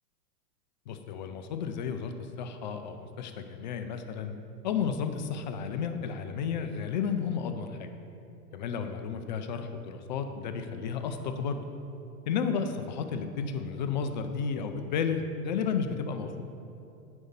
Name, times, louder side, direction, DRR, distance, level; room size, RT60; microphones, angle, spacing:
voice 1, 0.9-4.3 4.6-7.9 8.5-11.6 12.3-16.3, left 6 dB, 30° left, 7 dB, 0.4 m, -32 dB
7.8 x 5.3 x 6.9 m, 2.7 s
hypercardioid pair, 130°, 47 cm